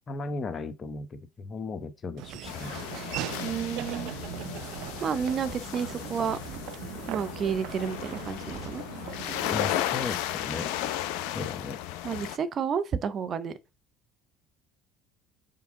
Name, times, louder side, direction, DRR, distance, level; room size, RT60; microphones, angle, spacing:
voice 1, 0.1-2.9 9.5-10.7 11.3-11.8, left 3 dB, 35° left, 1.1 m, -36 dB
Laughter / Walk footsteps, 2.2-9.7, right 15 dB, 65° right, 0.3 m, -39 dB
sound 1, 2.4-12.4, left 12 dB, 70° left, 0.6 m, -35 dB
voice 2, 3.4-4.1 5.0-6.4 7.1-8.8 12.0-13.5, right 7 dB, 45° right, 0.7 m, -30 dB
5.8 x 4.8 x 3.7 m
hypercardioid pair, 65°, 0 cm